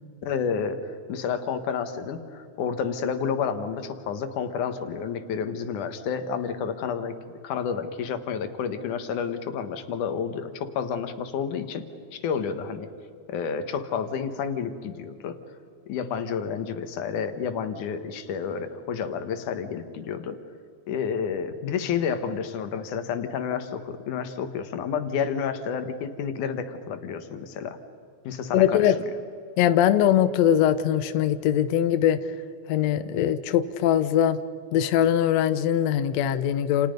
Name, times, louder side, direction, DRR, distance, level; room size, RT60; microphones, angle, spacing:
voice 1, 0.2-7.2 7.4-12.9 13.3-15.4 15.9-20.4 20.9-27.8 28.2-28.9, left 7 dB, 65° left, 9 dB, 2.6 m, -30 dB
voice 2, 28.5-29.0 29.6-32.2 32.7-34.4 34.7-36.9, left 10 dB, 90° left, 11 dB, 1.5 m, -21 dB
29.5 x 29.0 x 5.3 m, 2.5 s
omnidirectional pair, 4.3 m